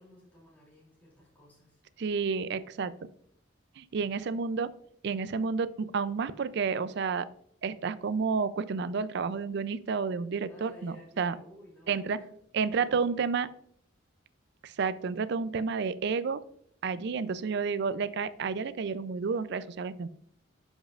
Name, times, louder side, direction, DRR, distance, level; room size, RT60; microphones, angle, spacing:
voice 1, 0.0-1.8 4.0-4.1 10.5-12.4 12.6-13.3, equal, 10° left, -6 dB, 2.8 m, -54 dB
voice 2, 2.0-2.9 3.8-4.7 5.0-7.3 7.6-11.4 11.9-12.2 12.5-13.5 14.6-16.4 16.8-20.1, right 5 dB, 60° right, 15 dB, 0.4 m, -30 dB
12.0 x 5.4 x 2.4 m, 0.66 s
head